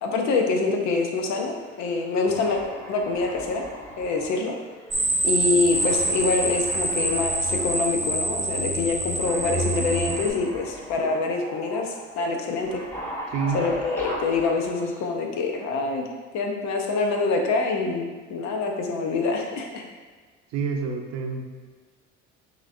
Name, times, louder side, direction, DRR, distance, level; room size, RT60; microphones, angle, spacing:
voice 1, 0.0-2.6 2.9-3.7 4.0-4.6 5.2-12.8 13.5-16.1 16.3-19.8, left 3 dB, 70° left, 2 dB, 0.7 m, -25 dB
sound 1, 1.5-1.9 2.3-5.3 5.7-7.9 8.2-8.3 9.2-15.1, equal, 10° left, 0.9 m, -38 dB
sound 2, 4.9-10.3, right 2 dB, 10° right, 0.4 m, -26 dB
voice 2, 13.3-13.7 20.5-21.4, right 5 dB, 65° right, 4 dB, 0.7 m, -27 dB
5.9 x 2.9 x 2.6 m, 1.5 s
cardioid pair, 100°, 29 cm